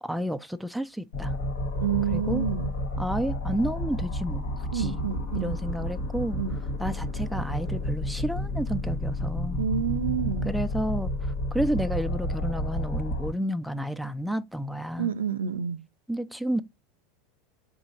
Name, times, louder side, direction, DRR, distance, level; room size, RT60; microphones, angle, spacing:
voice 1, 0.0-1.3 2.1-2.4 3.0-4.5 4.7-6.4 6.8-9.6 10.4-11.1 11.5-15.1 16.1-16.6, right 1 dB, ahead, 0.4 m, -31 dB
sound 1, 1.1-13.3, left 1 dB, 80° left, 1.4 m, -31 dB
voice 2, 1.8-2.7 4.7-5.6 6.4-6.6 9.6-10.5 15.0-15.8, right 8 dB, 90° right, 0.4 m, -28 dB
3.6 x 2.4 x 4.0 m
hypercardioid pair, 95°, 0 cm